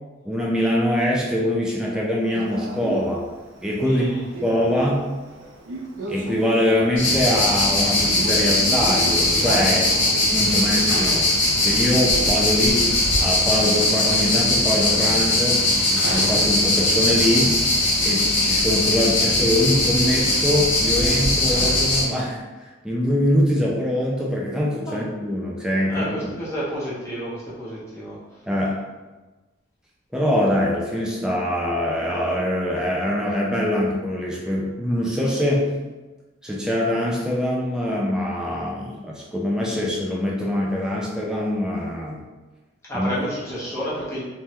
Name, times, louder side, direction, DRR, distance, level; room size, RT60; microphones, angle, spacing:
voice 1, 0.2-3.3 3.6-4.1 4.4-5.1 6.1-9.9 10.3-11.3 11.6-15.6 16.1-17.5 18.0-22.4 22.8-26.1 28.5-28.8 30.1-35.7 36.4-42.2 42.9-43.1, left 1 dB, 5° right, -4 dB, 0.3 m, -23 dB
Male speech man speaking, 2.3-10.8, right 2 dB, 85° right, 0.5 m, -34 dB
voice 2, 3.8-4.2 24.9-25.0 25.9-28.2 42.9-44.2, equal, 15° left, -8 dB, 0.8 m, -30 dB
sound 1, 7.0-22.0, left 1 dB, 80° left, 1.0 m, -20 dB
3.4 x 2.1 x 2.8 m, 1.2 s
head